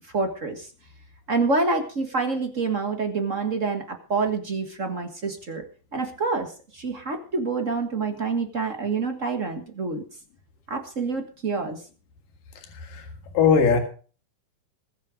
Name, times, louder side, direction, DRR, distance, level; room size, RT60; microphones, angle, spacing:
voice 1, 0.1-0.7 1.3-5.6 5.9-10.0 10.7-11.8, right 4 dB, 45° right, 5 dB, 1.0 m, -27 dB
voice 2, 13.3-13.8, left 6 dB, 85° left, 5 dB, 3.6 m, -19 dB
21.0 x 7.4 x 5.1 m, 0.39 s
omnidirectional pair, 3.8 m